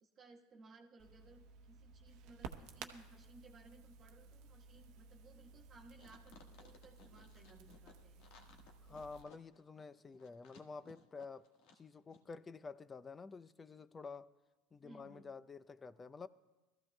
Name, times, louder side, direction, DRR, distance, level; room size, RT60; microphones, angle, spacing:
voice 1, 0.0-8.3 14.8-15.4, right 3 dB, 40° right, 1.2 m, -61 dB
Crackle, 1.0-9.2, right 5 dB, 60° right, 0.9 m, -55 dB
sound 1, 5.9-11.8 12.1-12.2, left 4 dB, 65° left, 1.4 m, -62 dB
voice 2, 8.9-11.5 11.7-14.3 14.7-16.3, left 4 dB, 25° left, 0.5 m, -50 dB
21.0 x 14.0 x 2.2 m
hypercardioid pair, 85°, 0 cm